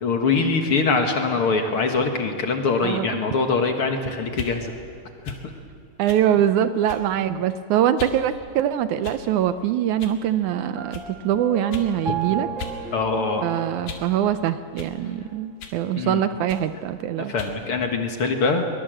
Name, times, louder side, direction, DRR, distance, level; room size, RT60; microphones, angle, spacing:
voice 1, 0.0-4.7 5.2-5.5 12.9-13.4 15.9-16.2 17.3-18.7, left 4 dB, 50° left, 4 dB, 2.0 m, -23 dB
voice 2, 2.8-3.2 6.0-12.5 13.4-17.3, right 10 dB, 75° right, 11 dB, 1.9 m, -23 dB
sound 1, 4.3-4.6 5.2-5.5 6.1-6.3 6.9-7.2 8.0-8.2 9.0-9.4 10.0-10.2 10.9-11.1 11.7-11.9 12.6-12.8 13.1-14.1 14.8-15.0 15.6-15.8 16.5-16.7 17.4-17.6, left 6 dB, 85° left, 3.7 m, -37 dB
Piano, 10.8-14.6, right 7 dB, 35° right, 1.3 m, -34 dB
22.5 x 22.0 x 7.7 m, 2.5 s
omnidirectional pair, 3.7 m